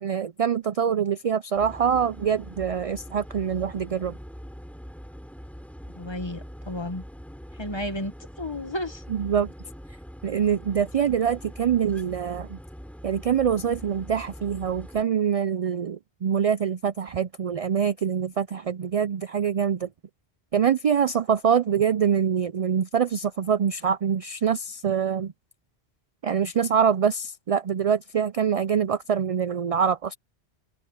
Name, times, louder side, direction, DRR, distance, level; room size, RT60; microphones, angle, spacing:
voice 1, 0.0-4.1 9.1-9.5 10.2-12.6 13.0-19.9 20.5-25.3 26.2-30.2, right 7 dB, 55° right, 0.4 m, -24 dB
sound 1, 1.5-15.0, equal, ahead, 5.9 m, -43 dB
voice 2, 5.9-7.0 7.6-9.0, left 1 dB, 25° left, 1.4 m, -32 dB
omnidirectional pair, 1.1 m